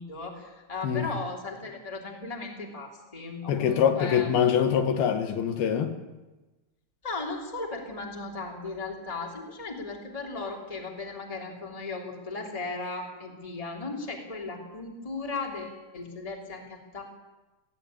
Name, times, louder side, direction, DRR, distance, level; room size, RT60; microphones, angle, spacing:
voice 1, 0.0-4.3 7.0-17.0, left 3 dB, 10° left, 2.7 m, -36 dB
voice 2, 3.5-5.9, left 8 dB, 75° left, 3.1 m, -24 dB
18.0 x 16.5 x 8.9 m
omnidirectional pair, 4.5 m